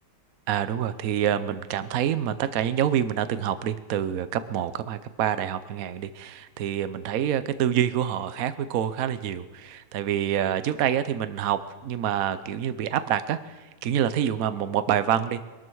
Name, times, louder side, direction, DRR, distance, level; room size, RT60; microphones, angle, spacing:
voice 1, 0.5-15.4, right 10 dB, 70° right, 12 dB, 0.8 m, -27 dB
23.0 x 12.5 x 4.7 m, 1.4 s
omnidirectional pair, 2.3 m